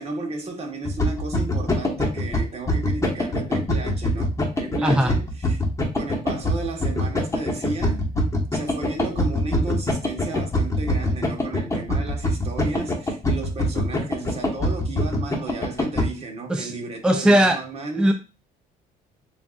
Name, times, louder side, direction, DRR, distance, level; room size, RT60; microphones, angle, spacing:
voice 1, 0.0-5.6 5.9-8.1 8.5-18.1, right 3 dB, 40° right, 1.3 m, -33 dB
sound 1, 0.8-16.1, left 1 dB, 15° left, 1.2 m, -23 dB
voice 2, 4.8-5.1 16.5-16.7 17.0-17.6 18.0-18.1, right 1 dB, 5° right, 0.3 m, -18 dB
6.8 x 2.6 x 2.4 m
cardioid pair, 110°, 17 cm